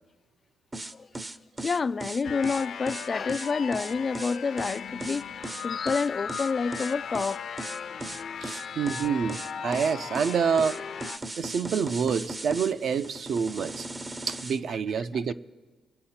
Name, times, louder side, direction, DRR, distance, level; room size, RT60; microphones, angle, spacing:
sound 1, 0.7-14.6, right 2 dB, 20° right, 0.6 m, -38 dB
voice 1, 1.6-7.4, left 5 dB, 40° left, 0.3 m, -28 dB
sound 2, 2.2-11.2, left 7 dB, 65° left, 0.7 m, -37 dB
voice 2, 8.4-10.8 11.4-13.9 14.3-15.3, right 6 dB, 65° right, 0.6 m, -27 dB
23.5 x 7.8 x 4.3 m
cardioid pair, 85°, 0 cm